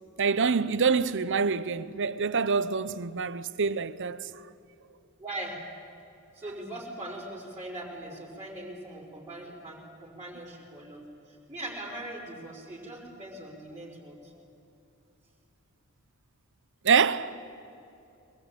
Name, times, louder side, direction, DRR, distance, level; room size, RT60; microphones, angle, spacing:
voice 1, 0.2-4.3 16.8-17.4, right 5 dB, 55° right, 0.9 m, -26 dB
voice 2, 5.2-5.6 6.3-14.3, right 1 dB, 15° right, 4.7 m, -41 dB
23.0 x 20.5 x 9.1 m
head